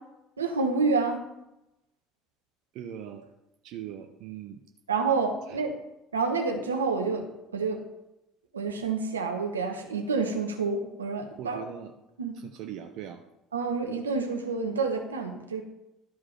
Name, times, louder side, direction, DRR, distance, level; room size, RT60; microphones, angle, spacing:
voice 1, 0.4-1.2 4.9-5.8 6.1-7.3 7.5-7.8 8.5-11.6 12.2-12.3 13.5-15.6, right 4 dB, 80° right, 4 dB, 1.2 m, -28 dB
voice 2, 2.7-3.3 3.6-4.6 5.5-5.6 11.4-11.9 12.3-13.2, right 10 dB, 55° right, 6 dB, 0.7 m, -40 dB
12.0 x 4.9 x 5.8 m, 0.92 s
figure-of-eight pair, 60°, 0 cm